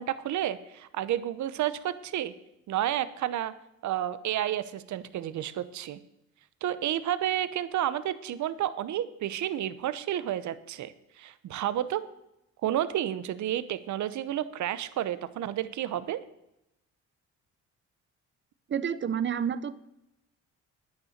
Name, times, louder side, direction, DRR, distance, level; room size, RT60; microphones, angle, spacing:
voice 1, 0.0-2.3 2.7-3.5 3.8-6.0 6.6-12.0 12.6-16.2, right 11 dB, 70° right, 14 dB, 0.9 m, -31 dB
voice 2, 18.7-19.7, right 8 dB, 40° right, 16 dB, 0.8 m, -29 dB
9.8 x 9.3 x 6.6 m, 0.86 s
cardioid pair, 90°, 30 cm